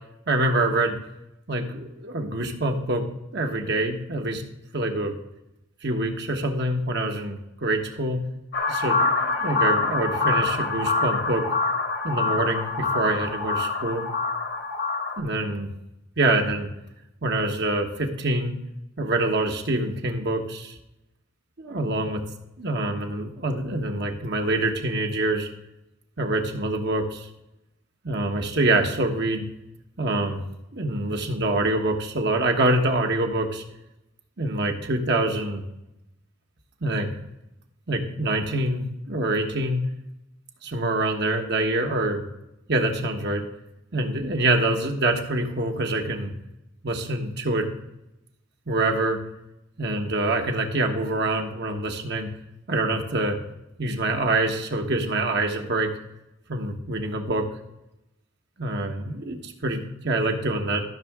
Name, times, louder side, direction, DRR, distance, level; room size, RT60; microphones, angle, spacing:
voice 1, 0.3-1.0 1.5-3.0 3.3-4.4 4.7-5.1 5.8-8.2 8.7-11.5 12.0-14.0 15.2-15.7 16.2-16.7 17.2-18.5 19.0-20.7 21.6-22.2 22.6-25.5 26.2-27.3 28.0-29.4 30.0-30.5 30.7-33.6 34.4-35.6 36.8-37.1 37.9-39.8 40.6-42.2 42.7-43.4 43.9-46.3 46.8-47.7 48.7-49.2 49.8-52.3 52.7-53.4 53.8-55.9 56.5-57.5 58.6-60.8, right 2 dB, 55° right, 3 dB, 1.3 m, -25 dB
sound 1, 8.5-15.2, left 3 dB, 60° left, 1.2 m, -25 dB
13.5 x 6.4 x 3.6 m, 0.90 s
head